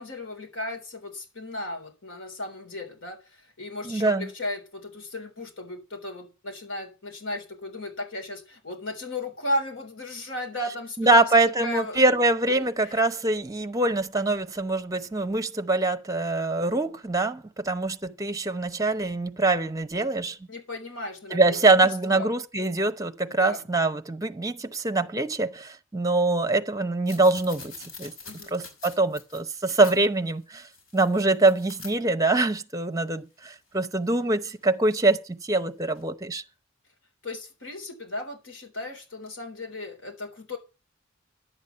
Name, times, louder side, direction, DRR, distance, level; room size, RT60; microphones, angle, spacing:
voice 1, 0.0-12.0 12.6-13.0 20.5-21.6 21.8-22.3 23.4-23.6 28.2-28.5 37.2-40.6, left 1 dB, 70° left, 3.6 m, -35 dB
voice 2, 3.8-4.3 11.0-20.4 21.3-27.7 28.0-28.1 28.5-30.7 30.9-36.4, right 2 dB, 15° right, 0.8 m, -24 dB
sound 1, 27.1-30.0 30.6-31.9 34.4-34.7 36.0-36.1, left 4 dB, 85° left, 5.6 m, -44 dB
11.0 x 8.2 x 6.9 m
head